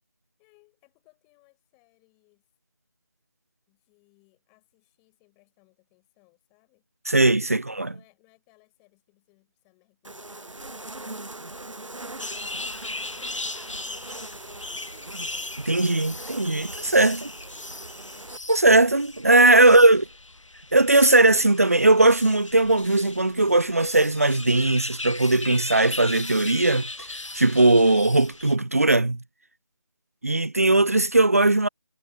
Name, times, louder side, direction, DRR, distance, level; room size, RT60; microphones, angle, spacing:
voice 1, 0.4-2.5 3.7-6.9 7.5-15.1, left 39 dB, 10° left, 5.5 m, -64 dB
voice 2, 7.1-7.9 15.7-17.3 18.5-20.0 20.7-26.9 27.3-29.2 30.2-31.7, right 2 dB, 30° right, 0.4 m, -19 dB
sound 1, 10.0-18.4, right 2 dB, 80° right, 0.9 m, -41 dB
sound 2, 12.2-28.6, left 2 dB, 80° left, 0.8 m, -38 dB
figure-of-eight pair, 160°, 16 cm